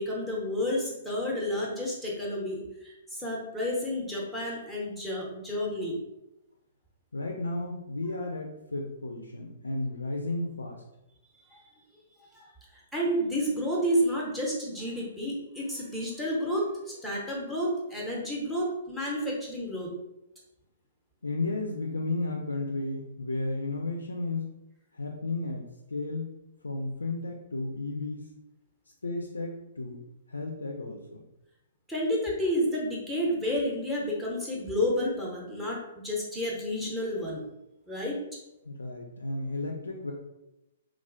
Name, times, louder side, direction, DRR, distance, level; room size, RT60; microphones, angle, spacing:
voice 1, 0.0-6.0 11.5-11.6 12.9-19.9 31.9-37.4 37.9-38.2, equal, 5° right, -4 dB, 0.8 m, -30 dB
voice 2, 7.1-10.8 21.2-24.4 24.9-26.3 26.6-28.3 29.0-30.0 30.3-31.0 38.6-40.1, left 2 dB, 75° left, 1 dB, 0.3 m, -33 dB
3.1 x 2.4 x 2.5 m, 0.91 s
figure-of-eight pair, 115°, 0 cm